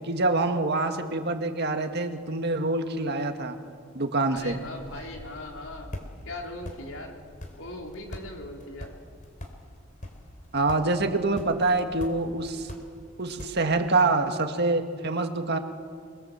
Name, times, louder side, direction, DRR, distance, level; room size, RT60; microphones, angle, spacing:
voice 1, 0.1-3.6 3.9-4.6 10.5-12.7 13.2-15.6, right 2 dB, 55° right, 6 dB, 1.9 m, -26 dB
voice 2, 4.3-5.9 6.2-7.2 7.5-8.9, left 2 dB, 75° left, 1 dB, 3.8 m, -39 dB
sound 1, 4.3-13.9, left 1 dB, 40° left, 2.9 m, -44 dB
27.5 x 21.5 x 7.5 m, 2.1 s
head